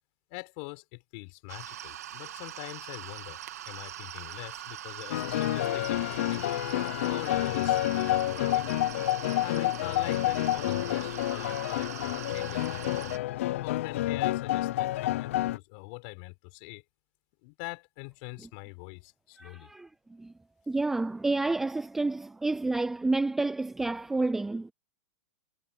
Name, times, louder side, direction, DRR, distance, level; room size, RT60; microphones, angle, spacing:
voice 1, 0.3-3.4 3.7-6.4 7.0-8.7 9.4-13.2 13.6-16.8 17.4-19.7, left 29 dB, 40° left, 5.4 m, -43 dB
sound 1, 1.5-13.2, right 11 dB, 80° right, 1.8 m, -42 dB
sound 2, 5.1-15.6, left 14 dB, 55° left, 0.9 m, -29 dB
voice 2, 19.4-20.3 20.7-24.7, right 2 dB, 5° right, 0.4 m, -29 dB
supercardioid pair, 170°, 8 cm